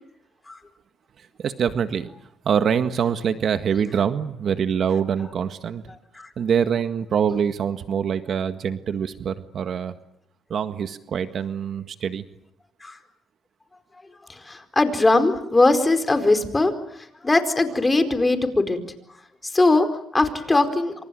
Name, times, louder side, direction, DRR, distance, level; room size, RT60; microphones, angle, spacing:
voice 1, 1.2-2.1 2.4-5.8 6.4-9.9 10.5-12.3, right 7 dB, 60° right, 9 dB, 1.7 m, -24 dB
voice 2, 14.3-16.7 17.2-18.8 19.4-19.9 20.1-20.9, left 2 dB, 20° left, 8 dB, 4.6 m, -20 dB
29.0 x 26.5 x 7.8 m, 0.75 s
cardioid pair, 90°, 0 cm